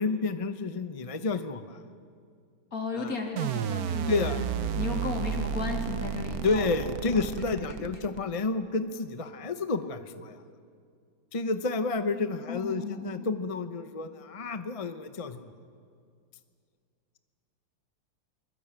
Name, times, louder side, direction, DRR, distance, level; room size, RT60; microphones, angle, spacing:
voice 1, 0.0-1.8 2.9-3.2 4.1-4.4 6.4-10.4 11.3-15.5, left 3 dB, 35° left, 9 dB, 0.5 m, -30 dB
voice 2, 2.7-4.4 4.8-6.8 7.1-7.7 12.1-13.1, left 3 dB, 50° left, 1 dB, 3.5 m, -35 dB
sound 1, 3.4-8.4, right 8 dB, 65° right, 1.2 m, -32 dB
24.0 x 20.5 x 8.9 m, 2.2 s
omnidirectional pair, 1.9 m